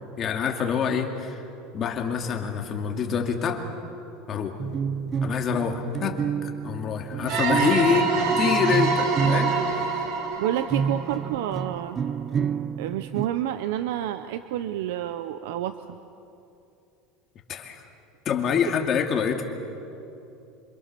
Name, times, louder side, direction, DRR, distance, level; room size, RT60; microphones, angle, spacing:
voice 1, 0.2-1.4 1.7-3.7 4.3-4.6 5.2-9.9 17.5-17.8 18.3-19.5, left 6 dB, 30° left, 3 dB, 2.3 m, -26 dB
sound 1, 4.6-10.3 10.7-13.3, right 7 dB, 25° right, 0.5 m, -29 dB
sound 2, 7.3-11.9, right 4 dB, 55° right, 2.9 m, -26 dB
voice 2, 10.4-12.0 12.8-16.0, right 12 dB, 85° right, 11 dB, 0.8 m, -29 dB
27.0 x 26.0 x 6.9 m, 2.8 s
cardioid pair, 155°, 0 cm